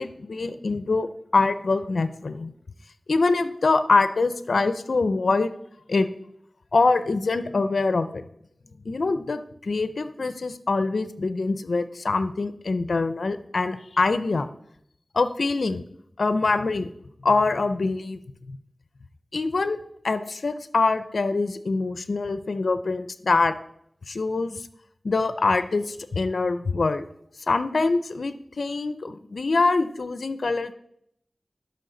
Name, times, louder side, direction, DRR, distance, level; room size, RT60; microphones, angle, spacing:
voice 1, 0.0-2.5 3.1-5.5 5.9-6.1 6.7-8.2 8.9-14.5 15.1-15.8 16.2-16.9 17.2-18.2 18.5-18.6 19.3-19.8 20.0-23.5 24.1-24.6 25.0-27.0 27.5-30.7, left 3 dB, 85° left, 12 dB, 0.4 m, -24 dB
12.0 x 5.3 x 3.8 m, 0.72 s
wide cardioid pair, 45°, 0 cm